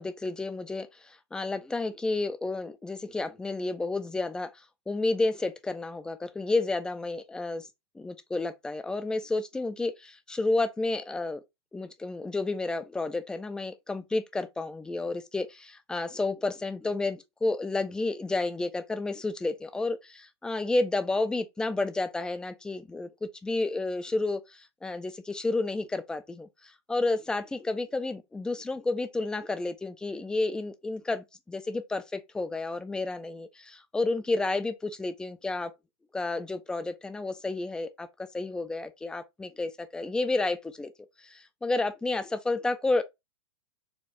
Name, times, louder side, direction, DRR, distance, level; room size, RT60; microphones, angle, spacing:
voice 1, 0.0-4.5 4.9-7.7 8.0-11.4 11.7-35.7 36.1-40.9 41.2-43.0, left 2 dB, 5° left, 0.3 m, -31 dB
4.4 x 2.4 x 3.0 m
figure-of-eight pair, 105°, 14 cm